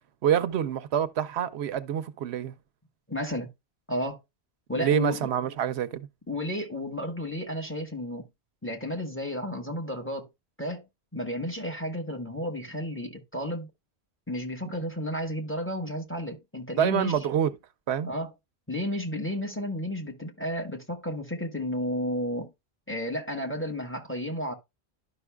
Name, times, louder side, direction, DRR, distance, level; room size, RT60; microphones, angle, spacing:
voice 1, 0.2-2.5 4.7-6.1 16.8-17.5 17.9-18.1, right 9 dB, 85° right, 0.9 m, -26 dB
voice 2, 3.1-3.5 3.9-4.2 4.7-5.3 6.3-8.3 8.6-10.3 10.6-10.9 11.1-13.7 14.3-17.1 18.0-18.3 18.7-22.5 22.9-24.5, left 1 dB, 10° left, 1.2 m, -32 dB
12.0 x 5.5 x 2.2 m
omnidirectional pair, 1.1 m